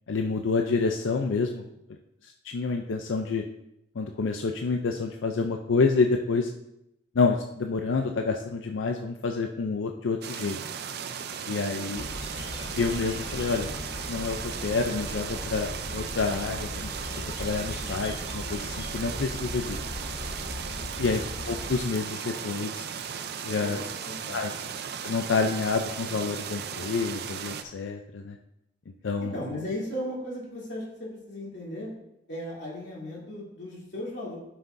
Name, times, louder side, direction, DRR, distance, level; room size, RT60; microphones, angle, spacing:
voice 1, 0.1-1.6 2.2-3.4 4.0-6.5 7.1-10.6 11.5-12.1 12.8-13.7 14.1-16.9 17.4-19.8 20.9-22.8 23.4-23.8 24.3-24.5 25.0-28.4 29.0-29.3, left 4 dB, 90° left, 4 dB, 0.5 m, -28 dB
sound 1, 10.2-27.6, right 7 dB, 55° right, 0.5 m, -36 dB
sound 2, 12.0-21.8, left 1 dB, 25° left, 0.6 m, -38 dB
voice 2, 20.7-21.0 23.6-24.5 29.2-31.9 32.3-34.4, left 1 dB, 65° left, -5 dB, 3.0 m, -36 dB
11.0 x 5.8 x 2.6 m, 0.82 s
head